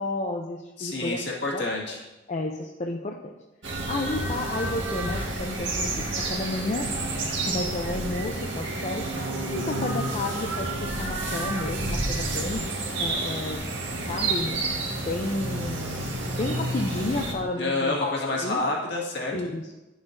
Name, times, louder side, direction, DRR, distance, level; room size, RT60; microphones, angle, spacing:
voice 1, 0.0-1.2 1.5-1.6 2.3-3.4 3.9-6.9 7.5-9.1 9.5-12.6 13.0-13.6 14.1-14.6 15.0-18.6 19.3-19.7, left 2 dB, 40° left, 1 dB, 0.5 m, -31 dB
voice 2, 0.8-2.0 17.6-19.5, left 2 dB, 65° left, -3 dB, 1.9 m, -28 dB
sound 1, 3.6-17.3, right 2 dB, 70° right, 1.7 m, -30 dB
11.0 x 7.1 x 2.6 m, 1.1 s
head